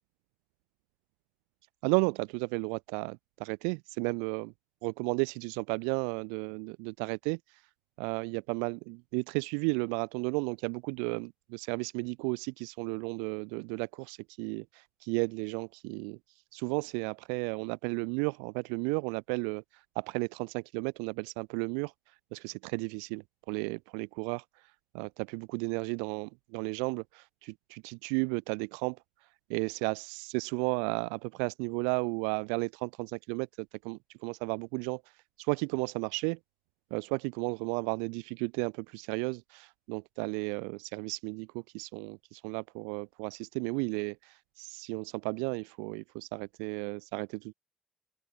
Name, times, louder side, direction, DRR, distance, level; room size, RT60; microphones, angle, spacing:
voice 1, 1.8-4.5 4.8-7.6 8.0-16.2 16.5-29.0 29.2-36.4 36.9-47.5, right 40 dB or more, 85° right, 2.0 m, -34 dB
open air
hypercardioid pair, 45°, 0 cm